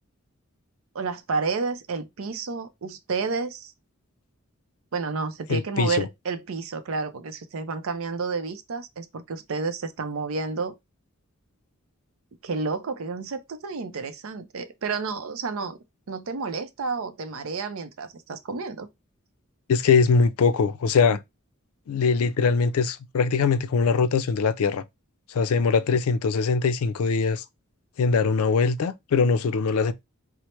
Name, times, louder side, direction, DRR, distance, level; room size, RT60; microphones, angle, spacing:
voice 1, 0.9-3.7 4.9-10.8 12.4-15.8 16.1-18.9, right 4 dB, 70° right, 0.5 m, -30 dB
voice 2, 5.5-6.1 19.7-21.2 21.9-24.8 25.3-27.4 28.0-29.9, left 5 dB, 85° left, 0.4 m, -22 dB
4.3 x 2.0 x 3.0 m
head